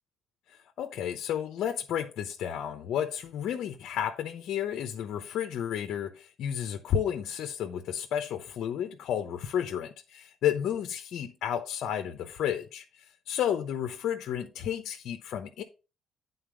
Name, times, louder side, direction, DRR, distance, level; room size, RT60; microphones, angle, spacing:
voice 1, 0.5-12.8 13.3-15.6, left 9 dB, 65° left, 0.8 m, -32 dB
8.8 x 4.0 x 5.0 m
cardioid pair, 105°, 0 cm